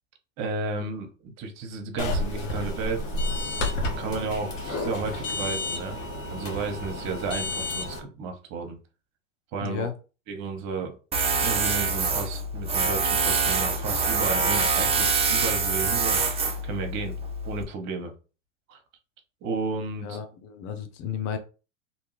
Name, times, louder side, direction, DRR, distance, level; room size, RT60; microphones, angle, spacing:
voice 1, 0.4-3.0 4.0-6.0 6.3-8.8 9.5-9.9 10.3-11.0 11.4-16.2 16.6-18.1 18.7-18.8 19.4-20.2, right 4 dB, 45° right, 0.9 m, -33 dB
sound 1, 2.0-8.0, left 2 dB, 80° left, 1.1 m, -30 dB
voice 2, 9.6-9.9 20.0-21.4, left 8 dB, 50° left, 0.7 m, -33 dB
Tools, 11.1-17.6, right 4 dB, 15° right, 0.5 m, -25 dB
2.7 x 2.2 x 3.1 m
hypercardioid pair, 90°, 38 cm